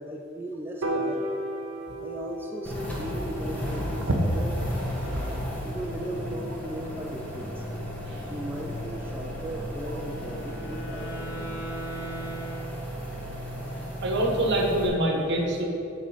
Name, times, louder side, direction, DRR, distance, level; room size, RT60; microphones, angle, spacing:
voice 1, 0.0-1.3 2.0-4.5 5.6-7.6 8.2-11.5, right 1 dB, 10° right, -1 dB, 0.4 m, -37 dB
Piano, 0.8-7.1, right 1 dB, 85° right, 0.9 m, -36 dB
sound 1, 2.6-14.9, equal, 5° left, 1.5 m, -35 dB
Wind instrument woodwind instrument, 9.8-13.4, right 2 dB, 85° left, 1.5 m, -39 dB
voice 2, 14.0-15.6, right 1 dB, 60° right, 1 dB, 1.1 m, -25 dB
9.2 x 3.9 x 5.5 m, 2.8 s
head